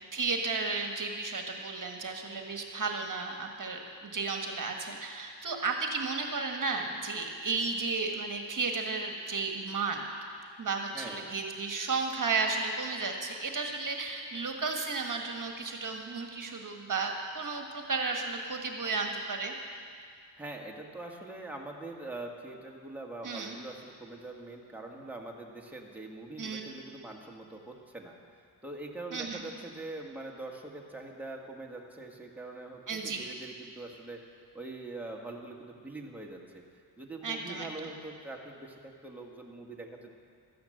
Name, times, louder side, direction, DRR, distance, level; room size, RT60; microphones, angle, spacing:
voice 1, 0.1-10.0 10.6-19.5 23.2-23.5 26.4-26.6 29.1-29.4 32.9-33.2 37.2-37.7, right 4 dB, 45° right, 2 dB, 1.5 m, -33 dB
voice 2, 10.9-11.3 20.4-28.2 28.6-34.2 34.5-36.6 37.0-40.1, right 2 dB, 5° right, -1 dB, 1.7 m, -43 dB
13.5 x 10.5 x 7.8 m, 2.2 s
cardioid pair, 80°, 42 cm